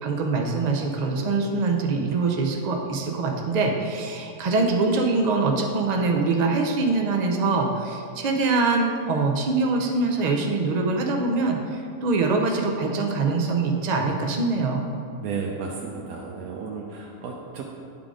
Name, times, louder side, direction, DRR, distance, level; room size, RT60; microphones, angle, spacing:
voice 1, 0.0-14.9, right 3 dB, 85° right, 1 dB, 0.3 m, -24 dB
voice 2, 15.2-17.6, right 5 dB, 70° right, -1 dB, 1.1 m, -33 dB
9.6 x 3.8 x 4.8 m, 2.3 s
omnidirectional pair, 1.7 m